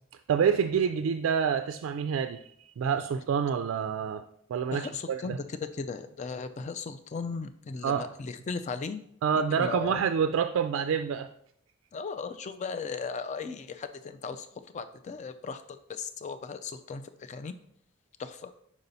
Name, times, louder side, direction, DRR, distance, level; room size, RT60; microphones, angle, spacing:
voice 1, 0.3-2.4 2.8-4.2 4.5-5.4 7.8-8.1 9.2-11.3, right 7 dB, 75° right, 8 dB, 0.3 m, -27 dB
voice 2, 4.7-9.0 9.5-10.0 11.9-14.5 14.7-17.5 18.2-18.5, left 5 dB, 35° left, 10 dB, 0.3 m, -37 dB
5.4 x 4.9 x 4.0 m, 0.69 s
head